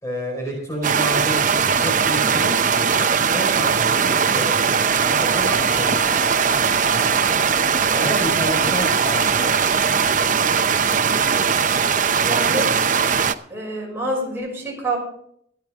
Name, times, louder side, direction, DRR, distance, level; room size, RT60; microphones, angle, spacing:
voice 1, 0.0-2.9 3.3-6.1 7.9-9.7, equal, 15° left, -1 dB, 4.8 m, -29 dB
sound 1, 0.8-13.3, right 6 dB, 45° right, 0.7 m, -19 dB
sound 2, 4.7-10.6, equal, 90° left, 6.0 m, -36 dB
voice 2, 7.9-8.4 12.2-12.7 13.5-15.0, right 1 dB, 15° right, -3 dB, 6.3 m, -27 dB
24.0 x 9.0 x 3.6 m, 0.66 s
head